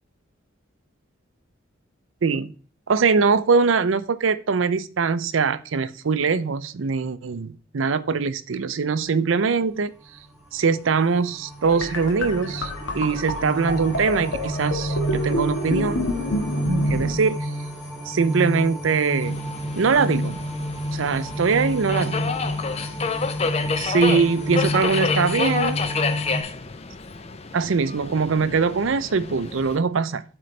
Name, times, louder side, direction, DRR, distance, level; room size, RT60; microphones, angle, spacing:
voice 1, 2.2-2.5 2.9-9.9 10.5-16.1 16.9-17.5 18.1-19.4 19.7-20.4 20.9-22.4 23.8-25.8 27.5-30.2, right 5 dB, 75° right, 0.5 m, -22 dB
sound 1, 10.2-26.4, equal, 5° left, 2.1 m, -30 dB
sound 2, 11.6-17.2, left 1 dB, 70° left, 1.5 m, -28 dB
Subway metro underground, 19.2-29.8, left 4 dB, 30° left, 0.5 m, -29 dB
12.0 x 3.9 x 3.2 m
head